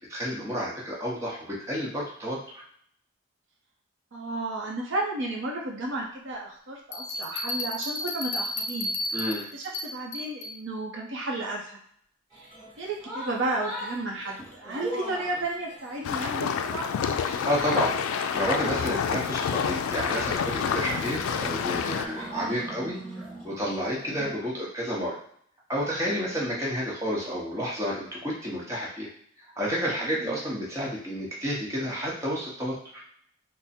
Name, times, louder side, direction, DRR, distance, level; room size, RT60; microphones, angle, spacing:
voice 1, 0.1-2.6 9.1-9.4 17.4-25.2 25.7-29.1 29.6-33.0, equal, 15° right, -5 dB, 0.9 m, -30 dB
voice 2, 4.1-8.9 9.5-11.8 12.8-16.9 26.1-26.5 30.0-30.4, right 2 dB, 60° right, -1 dB, 0.7 m, -33 dB
Bell, 6.9-10.6, left 1 dB, 35° left, 0.7 m, -33 dB
sound 1, 12.3-24.4, right 1 dB, 5° left, 1.1 m, -41 dB
sound 2, 16.0-22.1, left 7 dB, 85° left, 0.3 m, -28 dB
3.6 x 2.0 x 4.2 m, 0.64 s
head